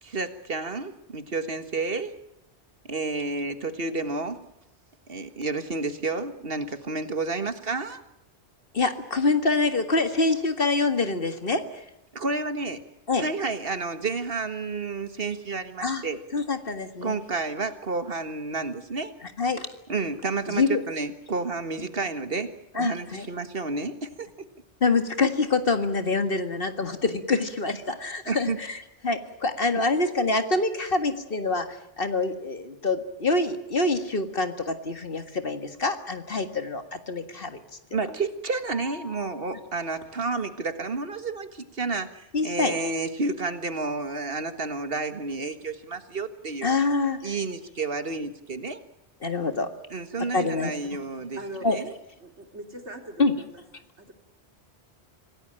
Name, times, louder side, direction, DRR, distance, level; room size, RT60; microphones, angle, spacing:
voice 1, 0.0-2.1 2.9-4.4 5.1-8.0 12.1-12.8 13.2-16.2 17.0-19.1 19.9-22.5 22.8-24.3 27.3-27.4 28.2-28.6 29.7-29.8 37.9-46.7 47.2-48.8 49.9-51.4 51.7-51.9, right 3 dB, 55° right, 10 dB, 1.8 m, -30 dB
voice 2, 8.7-11.8 13.1-13.2 15.8-16.0 16.3-17.1 19.2-19.7 20.5-20.8 22.8-23.3 24.8-28.8 29.0-37.6 37.9-38.0 42.3-42.8 46.6-47.2 49.2-49.7 50.3-50.7 51.6-51.8 53.2-53.3, left 3 dB, 55° left, 9 dB, 2.0 m, -26 dB
Mallet percussion, 38.7-40.5, left 3 dB, 35° left, 5.1 m, -47 dB
voice 3, 51.3-51.7 52.2-53.6 54.0-54.1, right 1 dB, 80° right, 5 dB, 3.7 m, -41 dB
26.5 x 17.0 x 8.9 m, 0.86 s
omnidirectional pair, 1.1 m